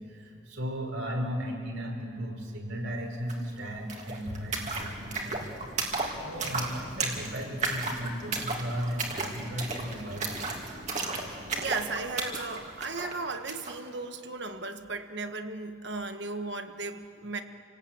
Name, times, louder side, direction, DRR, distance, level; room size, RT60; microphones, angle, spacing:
voice 1, 0.0-5.7 6.2-10.5, equal, 75° right, 1 dB, 4.9 m, -36 dB
sound 1, 3.3-3.4 3.6-13.8, right 3 dB, 35° right, 2.7 m, -34 dB
voice 2, 11.6-17.4, right 3 dB, 55° right, 7 dB, 1.4 m, -36 dB
29.0 x 18.5 x 8.8 m, 2.4 s
head